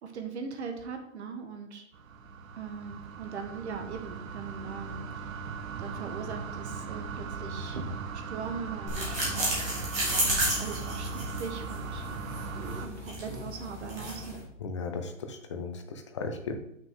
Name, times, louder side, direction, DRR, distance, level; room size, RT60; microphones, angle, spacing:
voice 1, 0.0-1.9 2.5-5.5 5.8-8.0 8.3-9.6 10.2-12.0 12.8-14.4, right 5 dB, 55° right, 5 dB, 1.4 m, -40 dB
sound 1, 1.9-12.9, right 5 dB, 85° right, 0.9 m, -39 dB
sound 2, 8.9-14.4, right 1 dB, 15° right, 2.2 m, -32 dB
voice 2, 14.6-16.6, left 4 dB, 25° left, 6 dB, 0.5 m, -36 dB
7.4 x 6.1 x 3.7 m, 0.75 s
hypercardioid pair, 165°, 39 cm